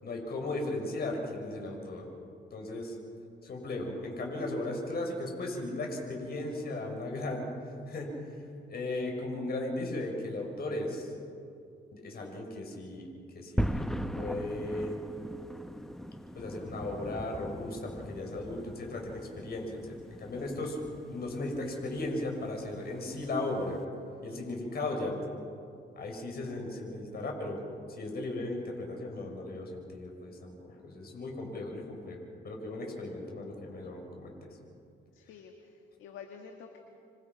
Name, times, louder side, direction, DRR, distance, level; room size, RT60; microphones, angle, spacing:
voice 1, 0.0-2.0 2.5-3.0 3.4-7.5 7.9-8.4 8.7-11.1 11.9-13.1 13.3-14.9 16.3-20.8 21.1-23.8 24.2-25.2 26.0-27.6 27.9-32.2 32.4-34.5, left 2 dB, 50° left, 1 dB, 5.9 m, -36 dB
sound 1, 13.6-23.8, equal, ahead, 1.0 m, -39 dB
voice 2, 35.1-36.8, left 6 dB, 90° left, 3 dB, 1.9 m, -49 dB
27.5 x 25.0 x 5.3 m, 2.5 s
cardioid pair, 90°, 20 cm